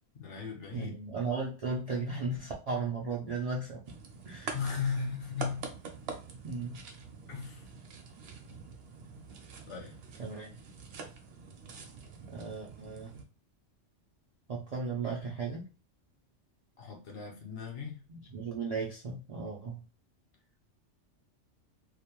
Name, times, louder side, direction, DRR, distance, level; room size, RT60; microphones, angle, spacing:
voice 1, 0.1-0.9 4.5-5.7 7.3-7.7 9.7-9.9 16.8-18.0, left 5 dB, 55° left, 1 dB, 0.9 m, -36 dB
voice 2, 0.7-3.8 4.3-4.5 6.4-6.8 10.2-10.5 12.3-13.1 14.5-15.6 18.1-19.8, right 4 dB, 80° right, -2 dB, 0.3 m, -36 dB
sound 1, 3.8-13.2, right 5 dB, 60° right, 0.7 m, -45 dB
2.4 x 2.1 x 2.9 m, 0.34 s
omnidirectional pair, 1.3 m